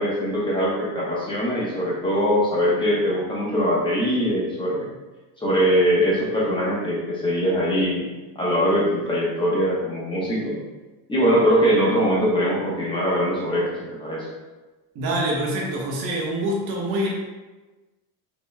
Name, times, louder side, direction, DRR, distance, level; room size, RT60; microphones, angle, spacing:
voice 1, 0.0-4.9 5.4-8.0 8.3-10.6 11.1-14.3, equal, 10° left, -5 dB, 0.9 m, -22 dB
voice 2, 14.9-17.1, right 1 dB, 50° right, -3 dB, 1.1 m, -25 dB
5.1 x 3.0 x 2.2 m, 1.2 s
cardioid pair, 145°, 45 cm